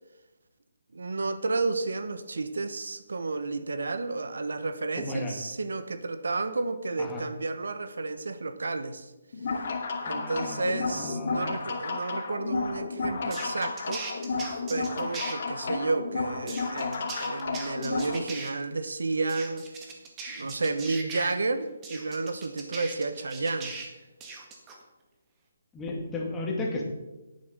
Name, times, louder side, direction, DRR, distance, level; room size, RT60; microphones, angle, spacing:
voice 1, 0.9-9.1 10.0-14.4 14.7-19.6 20.3-23.7, right 3 dB, 85° right, 11 dB, 1.2 m, -31 dB
voice 2, 5.0-5.4 7.0-7.2 10.0-11.6 25.7-26.8, left 2 dB, 10° left, -1 dB, 2.0 m, -34 dB
sound 1, 9.3-18.2, left 4 dB, 50° left, 2.3 m, -32 dB
sound 2, 13.3-15.3 16.5-18.5 19.3-21.3 21.8-23.9 24.2-24.8, right 4 dB, 15° right, 1.7 m, -39 dB
11.0 x 8.6 x 6.6 m, 1.1 s
hypercardioid pair, 165°, 0 cm